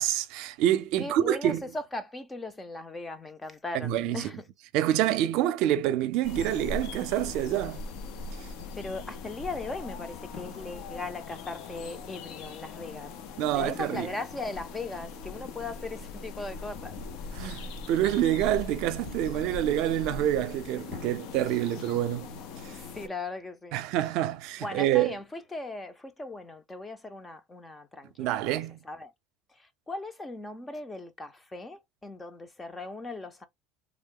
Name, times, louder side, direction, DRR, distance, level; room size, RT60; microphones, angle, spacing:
voice 1, 0.0-1.6 3.8-4.2 4.7-7.8 13.4-14.1 17.4-22.3 23.7-25.1 28.2-28.8, right 12 dB, 65° right, 0.6 m, -27 dB
voice 2, 1.0-4.4 8.8-13.1 13.5-17.0 22.7-23.8 24.6-28.6 28.8-29.1 29.6-33.5, left 2 dB, 15° left, 0.6 m, -38 dB
sound 1, 6.2-23.1, left 4 dB, 65° left, 0.7 m, -40 dB
3.5 x 2.1 x 3.7 m
cardioid pair, 145°, 0 cm